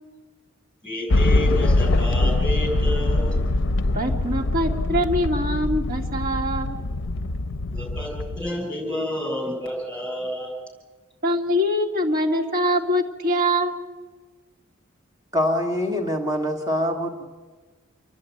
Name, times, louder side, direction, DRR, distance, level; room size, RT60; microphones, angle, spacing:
voice 1, 0.8-3.4 7.7-10.5, equal, 5° left, -1 dB, 7.4 m, -30 dB
sound 1, 1.1-8.5, left 2 dB, 65° left, 0.6 m, -23 dB
voice 2, 3.9-6.8 11.2-13.9, equal, 45° right, 1 dB, 2.4 m, -23 dB
voice 3, 15.3-17.2, left 1 dB, 15° right, 1 dB, 1.9 m, -24 dB
28.0 x 11.0 x 9.4 m, 1.4 s
head